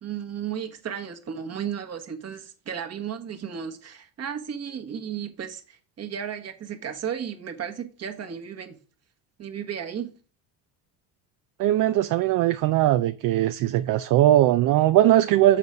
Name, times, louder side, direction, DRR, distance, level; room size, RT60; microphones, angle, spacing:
voice 1, 0.0-8.8 9.4-10.1, right 8 dB, 40° right, 1.3 m, -34 dB
voice 2, 11.6-15.6, right 13 dB, 55° right, 0.5 m, -20 dB
7.3 x 4.0 x 4.8 m
supercardioid pair, 90°, 39 cm